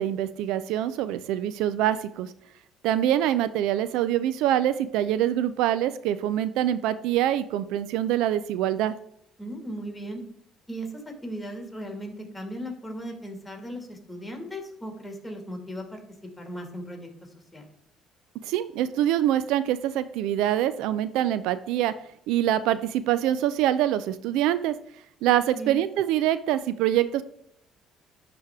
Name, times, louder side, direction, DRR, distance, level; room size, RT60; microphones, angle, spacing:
voice 1, 0.0-2.3 2.8-8.9 18.4-21.9 22.3-24.8 25.2-27.2, right 12 dB, 80° right, 14 dB, 0.3 m, -25 dB
voice 2, 9.4-10.2 10.7-16.0 16.4-17.7 25.5-25.8, right 1 dB, 10° left, 3 dB, 2.1 m, -37 dB
10.0 x 3.4 x 3.5 m, 0.73 s
supercardioid pair, 70°, 0 cm